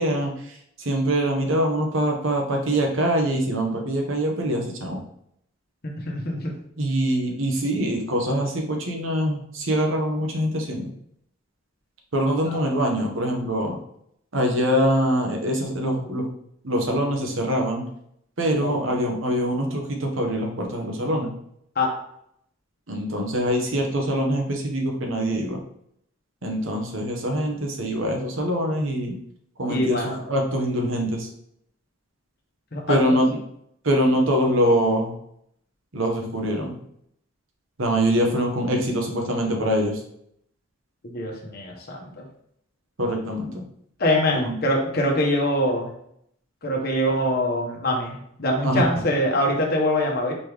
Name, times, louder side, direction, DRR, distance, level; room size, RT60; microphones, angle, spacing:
voice 1, 0.0-5.0 6.8-10.9 12.1-13.8 14.3-16.3 16.6-17.8 18.4-21.3 22.9-25.6 26.4-29.2 29.6-31.3 32.9-33.3 33.8-35.1 35.9-36.8 37.8-40.0 43.0-43.6 44.3-44.5 48.6-48.8, equal, 75° right, 1 dB, 1.0 m, -24 dB
voice 2, 6.0-6.5 12.4-12.7 18.6-18.7 21.8-21.9 29.7-30.2 32.7-33.2 41.0-42.2 44.0-45.9 46.6-50.3, left 1 dB, 50° left, 0 dB, 1.0 m, -24 dB
4.3 x 3.1 x 3.4 m, 0.72 s
head